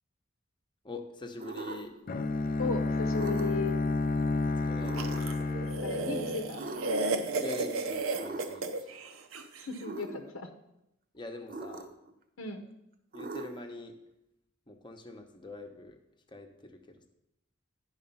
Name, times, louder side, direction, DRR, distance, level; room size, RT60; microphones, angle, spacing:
voice 1, 0.8-1.9 4.6-5.0 7.4-8.7 11.1-11.9 13.1-14.0 14.7-16.0 16.3-16.8, left 2 dB, 25° left, 4 dB, 0.8 m, -43 dB
sound 1, 1.4-2.1 3.1-3.7 4.8-5.4 6.5-7.2 8.2-8.8 9.8-10.2 11.5-12.1 13.1-13.8, right 2 dB, 45° right, 0.8 m, -41 dB
Bowed string instrument, 2.1-7.0, left 3 dB, 45° left, 0.5 m, -31 dB
voice 2, 2.6-3.8 5.8-6.7 9.6-10.5 12.4-12.6, left 4 dB, 85° left, 4 dB, 0.9 m, -35 dB
sound 2, 4.9-9.7, right 3 dB, 90° right, 0.8 m, -33 dB
10.5 x 4.9 x 5.5 m, 0.84 s
head